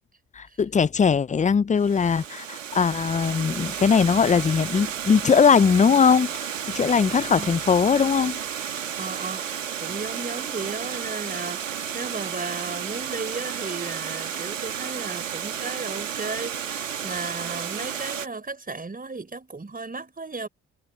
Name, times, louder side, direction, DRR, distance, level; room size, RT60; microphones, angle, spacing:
voice 1, 0.4-8.4, left 6 dB, 20° left, 0.6 m, -20 dB
Water, 1.8-18.3, right 8 dB, 90° right, 1.7 m, -32 dB
voice 2, 9.0-9.4 9.8-20.5, right 3 dB, 25° right, 5.1 m, -34 dB
figure-of-eight pair, 45°, 37 cm